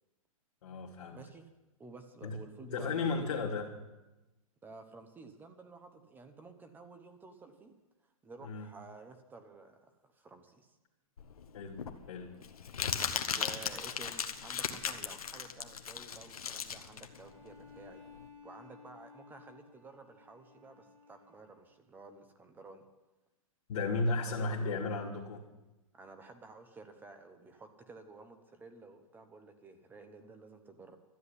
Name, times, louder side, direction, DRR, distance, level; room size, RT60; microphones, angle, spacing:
voice 1, 0.6-1.2 2.2-2.4 2.6-3.7 8.4-8.7 11.5-12.3 23.7-25.5, left 3 dB, 55° left, -3 dB, 2.3 m, -34 dB
voice 2, 1.1-1.5 1.8-3.3 4.6-7.7 8.2-10.7 13.2-18.0 18.4-22.8 24.2-24.6 25.9-31.0, right 3 dB, 10° right, 7 dB, 1.0 m, -52 dB
Crumpling crinkling, 11.2-18.3, left 7 dB, 85° left, 1.3 m, -37 dB
Bowed string instrument, 17.1-21.8, left 5 dB, 70° right, 6.4 m, -57 dB
12.5 x 8.0 x 9.9 m, 1.1 s
hypercardioid pair, 145°, 18 cm